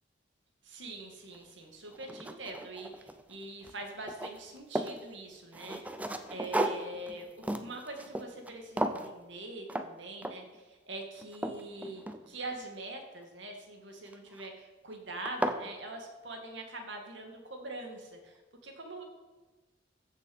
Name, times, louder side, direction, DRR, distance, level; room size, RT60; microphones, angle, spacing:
voice 1, 0.6-19.0, right 2 dB, 70° right, 3 dB, 2.2 m, -44 dB
sound 1, 1.3-1.4 1.9-3.4 3.6-5.0 5.5-8.5 8.8-9.1 9.7-9.9 10.2-10.6 11.0-12.6 14.1-14.5 14.9-15.0 15.3-15.6, right 1 dB, 10° right, 0.6 m, -35 dB
15.0 x 6.6 x 5.5 m, 1.2 s
head